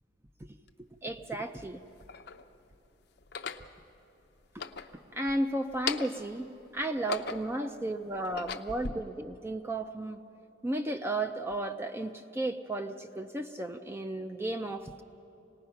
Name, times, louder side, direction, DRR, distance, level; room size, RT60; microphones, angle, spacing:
sound 1, 0.7-0.8 1.6-2.4 3.2-3.7 4.4-5.4 5.7-6.3 6.8-7.6 8.1-8.9, left 5 dB, 55° left, 0.6 m, -38 dB
voice 1, 0.8-1.8 4.5-10.2 10.6-15.0, right 1 dB, 10° right, 6 dB, 0.5 m, -34 dB
26.5 x 19.0 x 5.8 m, 2.9 s
head